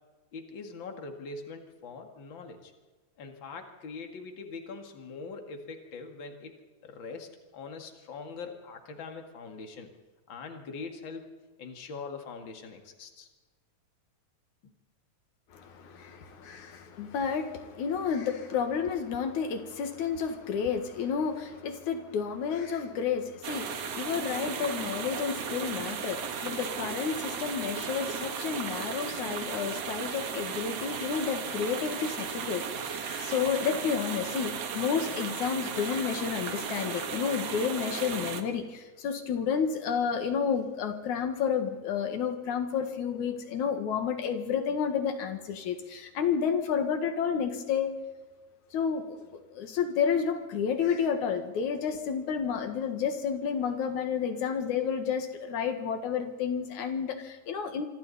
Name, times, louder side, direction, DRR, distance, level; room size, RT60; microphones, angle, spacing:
voice 1, 0.3-2.7 3.2-6.6 6.8-9.9 10.3-13.3 14.6-14.7, left 4 dB, 45° left, 4 dB, 2.8 m, -42 dB
voice 2, 15.5-47.9 48.7-49.2 49.5-57.9, left 7 dB, 85° left, 6 dB, 3.1 m, -31 dB
sound 1, 23.4-38.4, right 6 dB, 60° right, 2.6 m, -35 dB
26.5 x 26.0 x 4.3 m, 1.3 s
omnidirectional pair, 3.3 m